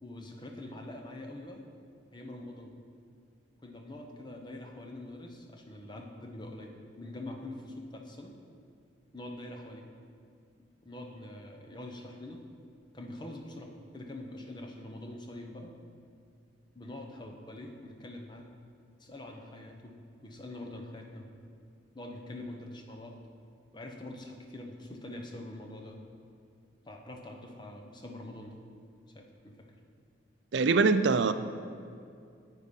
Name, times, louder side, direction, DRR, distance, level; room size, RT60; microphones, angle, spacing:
voice 1, 0.0-1.6 2.1-2.7 3.6-8.3 9.1-9.8 10.8-12.4 12.9-15.8 16.7-18.5 19.0-21.3 21.9-23.2 23.7-26.0 26.9-28.6 29.1-29.7, left 1 dB, 25° left, 3 dB, 0.9 m, -44 dB
voice 2, 30.5-31.3, right 4 dB, 70° right, 11 dB, 0.5 m, -23 dB
9.5 x 8.4 x 5.4 m, 2.4 s
head